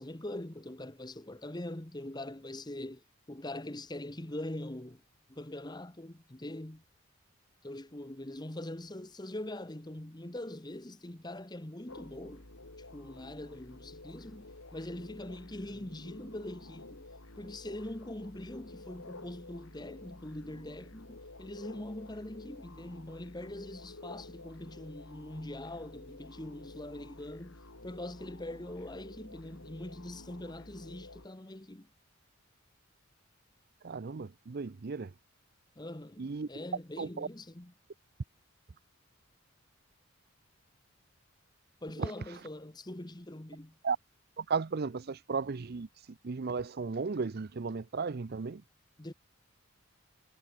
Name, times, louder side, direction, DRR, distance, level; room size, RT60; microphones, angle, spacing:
voice 1, 0.0-5.0 5.3-6.8 7.6-12.5 12.8-17.1 17.4-31.9 35.8-37.7 41.8-43.8 49.0-49.1, left 1 dB, 20° left, 1.2 m, -43 dB
sound 1, 11.9-31.3, left 2 dB, 75° left, 3.0 m, -51 dB
voice 2, 33.8-35.1 36.2-36.5 37.0-37.3 42.0-42.4 43.8-44.0 44.4-48.6, right 5 dB, 50° right, 0.5 m, -35 dB
head